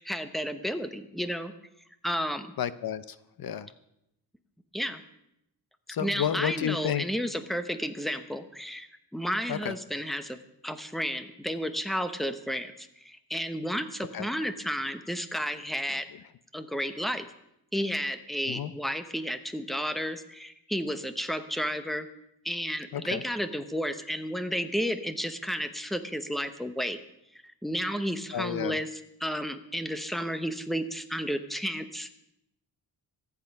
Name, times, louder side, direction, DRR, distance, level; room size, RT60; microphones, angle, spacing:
voice 1, 0.0-1.5 2.0-2.5 4.7-5.0 6.0-8.9 9.1-10.4 10.6-16.1 16.5-17.3 17.7-22.1 22.4-27.0 27.6-28.9 29.2-32.2, equal, ahead, 9 dB, 1.0 m, -32 dB
voice 2, 2.6-3.7 5.9-7.0 9.5-9.7 14.1-14.3 18.5-18.7 22.9-23.2 28.3-28.8, left 9 dB, 55° left, 15 dB, 0.7 m, -31 dB
24.5 x 8.4 x 5.4 m, 0.82 s
wide cardioid pair, 145°, 44 cm